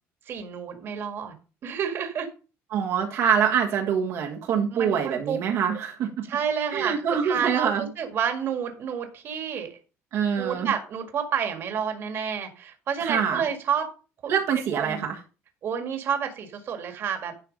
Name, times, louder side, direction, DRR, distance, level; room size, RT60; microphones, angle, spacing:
voice 1, 0.3-1.3 1.6-2.3 4.7-5.4 5.7-5.8 6.3-9.7 10.4-13.9 14.2-14.3 14.7-15.1 15.6-17.3, right 7 dB, 50° right, 5 dB, 1.9 m, -29 dB
voice 2, 2.7-6.2 6.7-7.9 10.1-10.7 13.0-13.4 14.3-15.2, right 7 dB, 70° right, -1 dB, 1.6 m, -25 dB
11.5 x 4.5 x 5.2 m, 0.34 s
cardioid pair, 145°, 5 cm